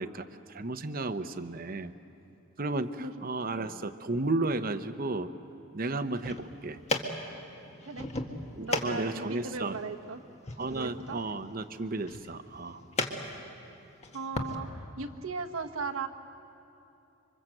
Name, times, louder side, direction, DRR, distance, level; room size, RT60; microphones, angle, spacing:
voice 1, 0.0-1.9 2.6-5.3 5.7-6.8 8.6-9.8 10.6-12.8, right 2 dB, 45° right, 10 dB, 0.9 m, -33 dB
sound 1, 6.0-14.5, left 2 dB, 30° left, 1.7 m, -37 dB
voice 2, 8.5-10.2 10.7-11.2 14.1-16.1, right 4 dB, 80° right, 6 dB, 1.3 m, -37 dB
26.5 x 25.0 x 7.8 m, 2.9 s
head